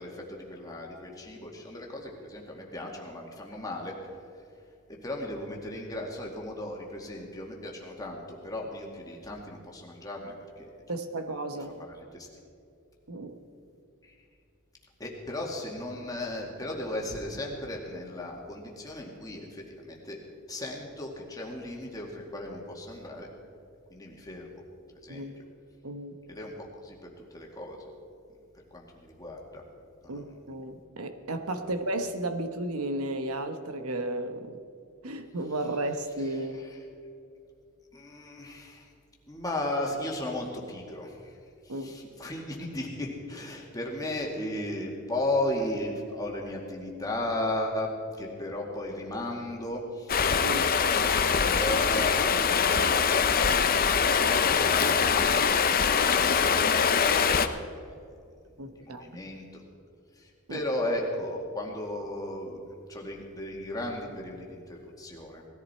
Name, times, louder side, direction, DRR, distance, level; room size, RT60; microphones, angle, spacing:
voice 1, 0.0-3.9 4.9-10.7 11.7-11.9 12.2-12.3 14.0-14.1 15.0-20.2 20.5-23.3 23.9-24.5 25.0-25.3 26.3-27.0 27.3-27.9 28.7-29.6 30.0-30.3 37.9-38.9 39.3-41.3 41.6-47.9 48.2-50.5 51.0-53.0 54.0-55.5 55.7-57.9 58.8-59.6 60.2-60.3 60.5-62.6 62.9-65.4, left 1 dB, 15° left, -1 dB, 2.1 m, -36 dB
voice 2, 10.9-11.7 13.1-13.4 25.1-25.4 25.8-26.1 30.1-34.6 35.0-36.6 41.7-42.0 50.4-50.7 58.6-59.2 60.5-60.6, right 1 dB, 80° right, 8 dB, 1.1 m, -34 dB
Stream, 50.1-57.5, left 6 dB, 40° left, 0.6 m, -23 dB
19.0 x 14.5 x 4.4 m, 2.4 s
head